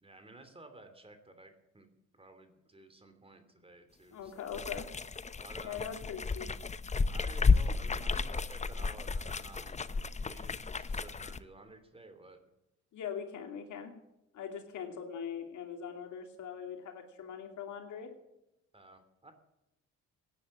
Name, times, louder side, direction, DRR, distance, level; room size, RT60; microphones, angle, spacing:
voice 1, 0.0-4.5 5.4-5.9 7.1-9.8 10.2-12.4 18.7-19.3, right 2 dB, 20° right, 9 dB, 2.8 m, -53 dB
voice 2, 4.1-4.9 5.6-6.5 12.9-13.9 14.3-18.1, left 7 dB, 75° left, 5 dB, 2.7 m, -41 dB
sound 1, 4.5-11.4, left 4 dB, 25° left, 0.7 m, -32 dB
17.0 x 10.0 x 7.2 m, 0.90 s
cardioid pair, 90°, 30 cm